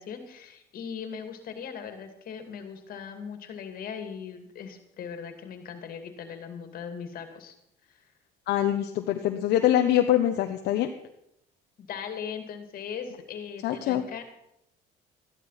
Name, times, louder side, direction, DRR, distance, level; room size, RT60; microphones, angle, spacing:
voice 1, 0.0-7.5 7.9-8.0 11.8-14.2, left 7 dB, 60° left, 7 dB, 2.4 m, -39 dB
voice 2, 8.5-10.9 13.6-14.0, left 12 dB, 80° left, 5 dB, 1.0 m, -24 dB
13.5 x 11.0 x 5.8 m, 0.79 s
cardioid pair, 110°, 17 cm